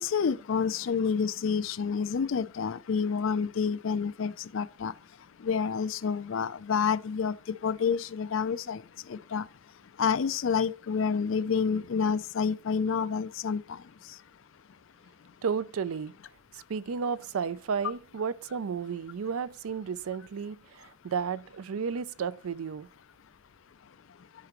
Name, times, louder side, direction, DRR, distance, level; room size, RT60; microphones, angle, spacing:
voice 1, 0.0-4.9 5.4-7.3 7.6-8.8 9.1-9.4 10.0-13.8, left 6 dB, 70° left, 0.4 m, -28 dB
voice 2, 15.4-16.1 16.7-22.9, right 6 dB, 85° right, 0.4 m, -33 dB
13.5 x 4.9 x 3.0 m
head